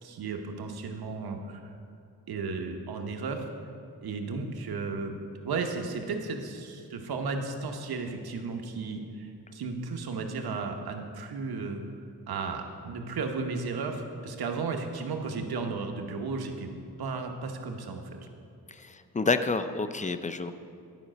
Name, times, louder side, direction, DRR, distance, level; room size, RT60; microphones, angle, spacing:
voice 1, 0.0-1.7 2.3-3.5 4.0-5.2 5.4-11.8 12.3-16.7 17.0-18.0, right 4 dB, 75° right, 4 dB, 1.0 m, -34 dB
voice 2, 18.7-20.5, left 4 dB, 20° left, 10 dB, 0.4 m, -29 dB
11.0 x 5.0 x 6.2 m, 2.4 s
cardioid pair, 85°, 37 cm